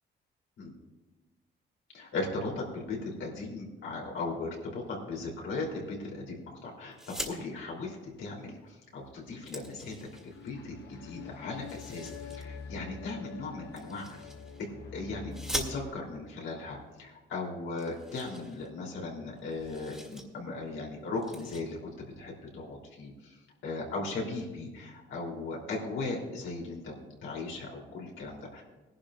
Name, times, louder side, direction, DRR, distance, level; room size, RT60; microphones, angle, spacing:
voice 1, 1.9-6.3 6.6-9.9 10.2-14.3 14.6-23.4 23.6-28.6, left 3 dB, 75° left, -2 dB, 3.4 m, -38 dB
sound 1, 6.9-7.4 8.7-8.8 9.1-10.5 11.6-12.4 13.7-14.7 15.3-16.2 17.0-17.1 17.4-17.5 17.8-19.1 19.4-20.2 20.6-20.8 21.2-21.6, right 1 dB, 5° right, 2.4 m, -42 dB
sound 2, 9.9-15.9, left 6 dB, 60° left, 1.4 m, -45 dB
20.0 x 11.5 x 2.5 m, 1.2 s
cardioid pair, 90°, 20 cm